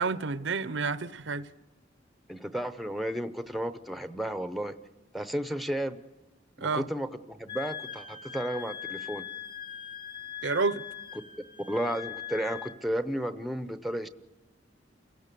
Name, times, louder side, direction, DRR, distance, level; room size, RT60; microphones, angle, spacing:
voice 1, 0.0-1.5 6.6-6.9 10.4-10.8, right 4 dB, 85° right, 0.7 m, -29 dB
voice 2, 2.3-4.7 5.1-6.0 6.6-9.2 11.7-14.1, equal, ahead, 0.7 m, -33 dB
Wind instrument woodwind instrument, 7.5-12.8, left 9 dB, 25° left, 1.2 m, -41 dB
29.0 x 16.5 x 6.8 m
head